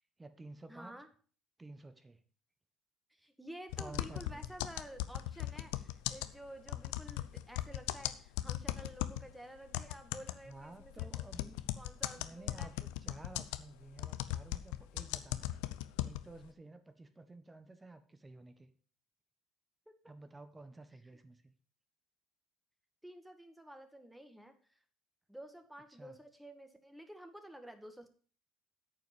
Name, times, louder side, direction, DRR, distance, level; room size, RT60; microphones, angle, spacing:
voice 1, 0.2-0.9 1.6-2.2 3.8-4.6 10.4-11.6 12.2-15.7 16.0-18.7 20.1-21.5 25.9-26.2, right 2 dB, 20° right, 10 dB, 1.3 m, -53 dB
voice 2, 0.7-1.1 3.1-11.4 11.7-12.7 23.0-24.8 25.3-28.1, right 1 dB, 5° right, 6 dB, 1.9 m, -51 dB
sound 1, 3.7-9.3 9.7-16.4, left 16 dB, 80° left, 0.6 m, -38 dB
8.9 x 5.4 x 7.0 m, 0.43 s
hypercardioid pair, 70°, 0 cm